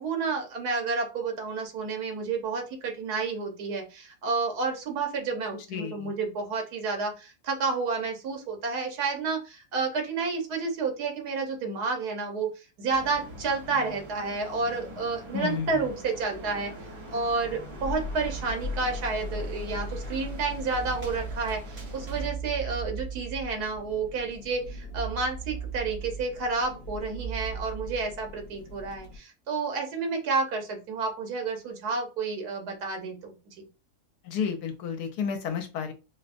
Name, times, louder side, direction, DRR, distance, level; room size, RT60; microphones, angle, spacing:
voice 1, 0.0-16.7 17.1-33.7, right 4 dB, 75° right, 3 dB, 1.4 m, -30 dB
voice 2, 5.7-6.1 15.3-15.9 34.2-35.9, left 7 dB, 75° left, 5 dB, 1.2 m, -31 dB
sound 1, 12.9-22.3, right 1 dB, 50° right, 1.6 m, -44 dB
sound 2, 17.1-29.2, right 2 dB, 50° left, 0.8 m, -38 dB
4.5 x 2.1 x 2.5 m, 0.30 s
omnidirectional pair, 1.7 m